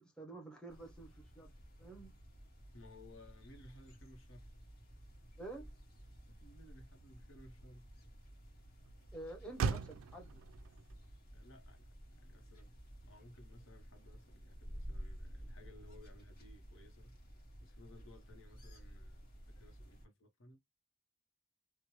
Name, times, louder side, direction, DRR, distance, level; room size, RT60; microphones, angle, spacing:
voice 1, 0.0-1.5 1.8-2.2 5.4-5.7 9.1-10.4, right 2 dB, 5° left, 0.6 m, -49 dB
sound 1, 0.7-20.1, equal, 50° left, 1.3 m, -53 dB
voice 2, 2.7-4.5 6.4-7.9 11.3-11.9 12.2-12.7 13.0-17.1 17.6-19.3 19.5-20.6, left 1 dB, 65° left, 0.9 m, -59 dB
Motor vehicle (road), 5.8-14.1, right 5 dB, 75° right, 0.3 m, -45 dB
3.0 x 2.0 x 2.9 m
head